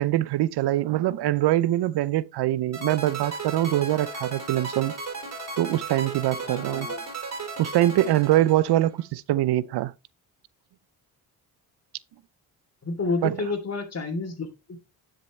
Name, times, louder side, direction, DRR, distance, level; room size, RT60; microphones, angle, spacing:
voice 1, 0.0-4.9 5.6-6.9 7.6-9.9 13.2-13.3, right 14 dB, 75° right, 0.6 m, -23 dB
sound 1, 2.7-9.0, right 4 dB, 40° right, 4.2 m, -35 dB
voice 2, 6.4-7.0 12.8-14.8, left 3 dB, 40° left, 3.1 m, -30 dB
10.0 x 6.6 x 3.2 m
cardioid pair, 70°, 40 cm